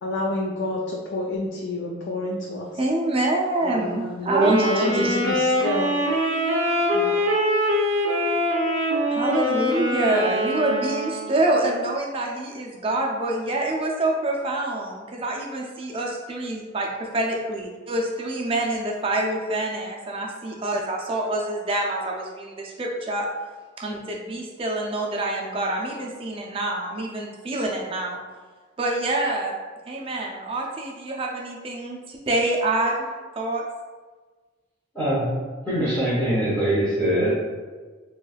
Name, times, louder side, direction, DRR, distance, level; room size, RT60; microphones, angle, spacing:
voice 1, 0.0-2.8 4.0-4.3 4.6-5.9 6.9-7.2, left 2 dB, 60° left, -1 dB, 0.3 m, -29 dB
voice 2, 2.8-5.2 9.1-23.3 23.8-28.2 28.8-29.5 29.9-33.1 33.4-33.6, right 2 dB, 25° right, 0 dB, 0.4 m, -26 dB
Wind instrument woodwind instrument, 4.4-11.6, equal, 80° right, 0.6 m, -23 dB
voice 3, 34.9-35.3 35.6-37.4, right 1 dB, 10° left, -8 dB, 0.8 m, -22 dB
3.2 x 3.1 x 2.2 m, 1.4 s
head